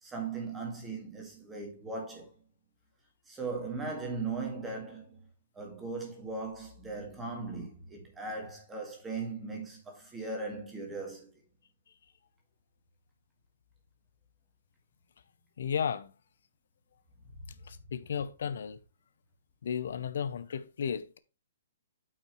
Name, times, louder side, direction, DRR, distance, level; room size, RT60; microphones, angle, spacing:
voice 1, 0.0-2.3 3.3-5.2 5.5-11.3, right 3 dB, 10° right, 1.8 m, -38 dB
voice 2, 15.6-16.1 17.7-18.8 19.6-21.2, left 7 dB, 65° left, 0.5 m, -34 dB
8.4 x 5.5 x 3.0 m
hypercardioid pair, 170°, 0 cm